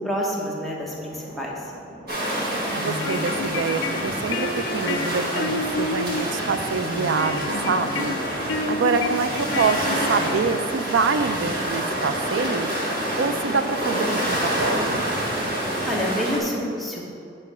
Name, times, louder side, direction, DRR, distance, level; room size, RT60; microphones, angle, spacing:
voice 1, 0.0-1.6 15.9-17.1, equal, ahead, -4 dB, 0.9 m, -28 dB
sound 1, 0.7-16.5, equal, 30° left, 1.4 m, -45 dB
sound 2, 2.1-16.4, right 1 dB, 50° right, 1.7 m, -27 dB
voice 2, 2.5-12.7 13.2-15.1, right 5 dB, 70° right, 10 dB, 0.4 m, -26 dB
sound 3, 2.8-10.8, left 3 dB, 75° left, 0.5 m, -30 dB
8.3 x 3.2 x 6.1 m, 2.5 s
head